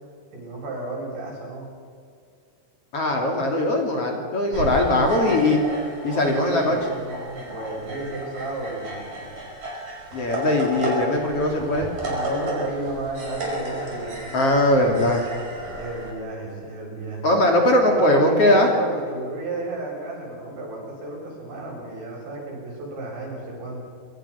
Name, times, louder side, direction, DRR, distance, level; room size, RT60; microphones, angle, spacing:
voice 1, 0.3-1.7 4.8-5.5 6.1-9.4 12.0-14.4 15.7-17.3 17.8-23.8, right 2 dB, 80° right, -2 dB, 9.7 m, -32 dB
voice 2, 2.9-5.6 6.0-6.8 10.1-11.9 14.3-15.3 17.2-18.7, left 1 dB, 40° left, 1 dB, 3.3 m, -20 dB
sound 1, 4.5-16.1, right 1 dB, 45° right, 6.8 m, -33 dB
27.0 x 25.5 x 5.7 m, 2.1 s
omnidirectional pair, 4.8 m